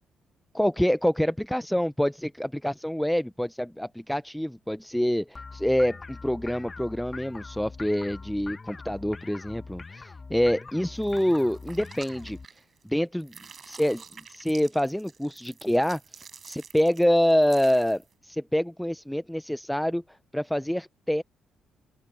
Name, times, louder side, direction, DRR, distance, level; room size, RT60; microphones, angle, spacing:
voice 1, 0.5-12.4 12.8-13.3 13.7-14.0 14.3-20.0 20.3-21.2, equal, 5° left, 0.5 m, -26 dB
sound 1, 5.3-12.5, left 4 dB, 30° left, 1.2 m, -43 dB
sound 2, 10.9-12.9 13.2-18.1, right 6 dB, 45° right, 5.9 m, -49 dB
open air
cardioid pair, 90°, 0 cm